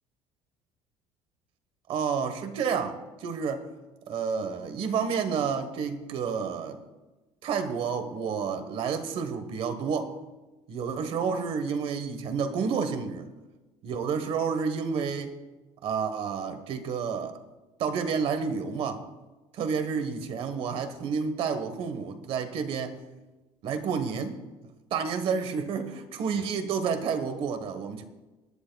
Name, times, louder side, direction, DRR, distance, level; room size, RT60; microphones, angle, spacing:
voice 1, 1.9-3.7 4.1-6.8 7.4-10.1 10.7-13.3 13.8-15.3 15.8-17.4 17.8-19.0 19.5-23.0 23.6-24.4 24.9-28.0, right 6 dB, 55° right, 1.3 m, -30 dB
19.5 x 11.5 x 2.3 m
cardioid pair, 150°, 11 cm